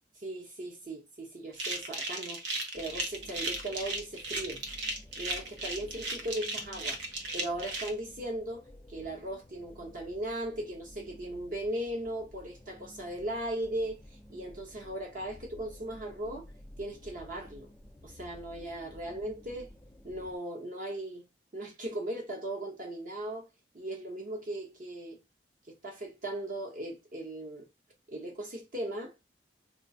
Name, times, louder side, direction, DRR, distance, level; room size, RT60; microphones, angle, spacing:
voice 1, 0.2-2.4 2.7-4.6 5.2-7.0 7.3-8.6 8.9-14.0 14.3-16.5 16.8-17.7 18.0-19.7 20.0-21.2 21.5-23.5 23.7-25.2 25.7-27.7 28.1-29.1, right 1 dB, 50° right, 0.8 m, -38 dB
sound 1, 1.5-7.9, right 2 dB, 85° right, 1.0 m, -35 dB
sound 2, 2.7-20.4, left 1 dB, 10° left, 0.5 m, -53 dB
4.3 x 2.4 x 2.6 m
head